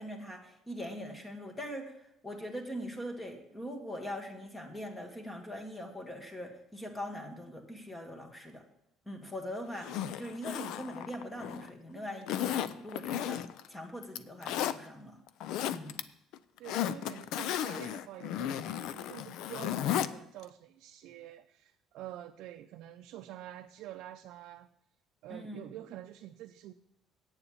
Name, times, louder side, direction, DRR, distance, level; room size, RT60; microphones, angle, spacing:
voice 1, 0.0-2.0 2.2-8.6 9.1-15.2 15.7-16.0 25.3-25.7, equal, 15° left, 1.9 m, -42 dB
Zipper (clothing), 9.8-11.7 12.3-13.7 14.0-14.8 15.3-16.0 16.3-20.1 20.4-20.5, left 10 dB, 75° left, 0.5 m, -34 dB
voice 2, 16.6-24.7 25.2-26.7, right 13 dB, 75° right, 0.5 m, -47 dB
8.8 x 6.9 x 8.4 m
cardioid pair, 125°, 0 cm